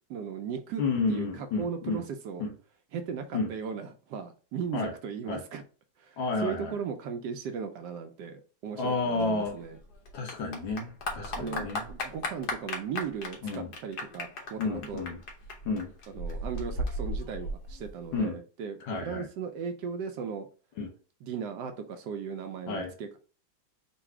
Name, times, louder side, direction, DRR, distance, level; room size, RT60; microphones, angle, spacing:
voice 1, 0.1-0.8 1.1-2.5 2.9-5.6 6.0-9.8 11.3-15.0 16.1-20.5 21.2-23.2, right 6 dB, 70° right, 7 dB, 1.1 m, -37 dB
voice 2, 0.8-2.0 2.4-2.5 3.3-3.5 4.7-4.9 5.3-5.4 6.2-6.8 8.8-9.6 10.1-11.8 13.4-13.7 14.6-15.2 15.7-15.9 18.1-18.4 18.8-19.3 20.8-20.9 22.7-22.9, left 3 dB, 80° left, 4 dB, 1.8 m, -31 dB
Clapping / Applause, 9.2-18.2, left 1 dB, 60° left, 1.4 m, -36 dB
4.0 x 2.5 x 4.6 m, 0.37 s
omnidirectional pair, 2.1 m